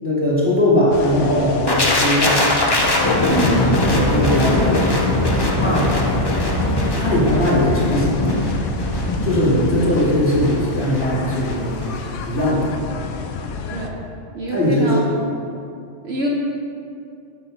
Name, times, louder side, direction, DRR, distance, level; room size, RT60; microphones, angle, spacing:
voice 1, 0.0-2.5 3.2-3.4 3.9-4.8 5.6-6.0 6.7-8.4 9.2-11.8 12.3-12.8 14.5-14.9, left 1 dB, 10° left, -6 dB, 1.9 m, -19 dB
sound 1, 0.9-13.9, left 4 dB, 90° left, 0.9 m, -30 dB
sound 2, 1.7-11.5 11.8-12.0, left 1 dB, 25° left, 0.6 m, -21 dB
voice 2, 3.3-4.1 13.7-14.0 14.3-15.1 16.0-16.3, right 2 dB, 60° right, -3 dB, 1.0 m, -25 dB
6.1 x 5.6 x 5.5 m, 2.5 s
omnidirectional pair, 1.2 m